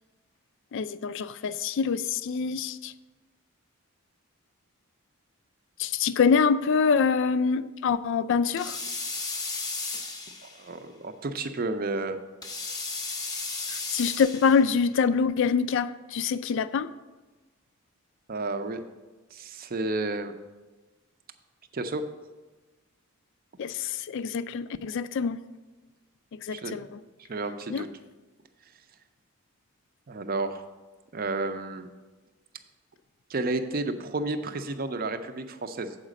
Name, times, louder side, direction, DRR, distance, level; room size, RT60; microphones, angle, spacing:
voice 1, 0.7-2.9 5.8-8.8 13.7-16.9 23.6-25.4 26.3-26.9 27.7-27.9, left 5 dB, 55° left, 0.3 m, -25 dB
sound 1, 8.6-10.7 12.4-14.7, left 3 dB, 20° left, 0.7 m, -34 dB
voice 2, 10.6-12.2 18.3-18.8 19.3-20.3 21.7-22.1 26.5-26.9 27.2-27.9 30.1-30.6 31.1-31.9 33.3-35.9, right 2 dB, 40° right, 0.5 m, -31 dB
7.3 x 4.9 x 6.3 m
head